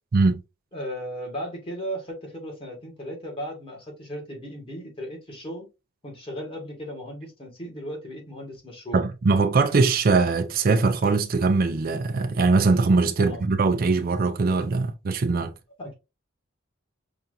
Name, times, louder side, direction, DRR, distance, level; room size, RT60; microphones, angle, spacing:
voice 1, 0.7-5.7 6.0-9.0 13.2-13.5 15.8-15.9, equal, 30° left, 1.6 m, -36 dB
voice 2, 8.9-15.5, right 3 dB, 50° right, 0.5 m, -21 dB
5.7 x 2.5 x 2.6 m
head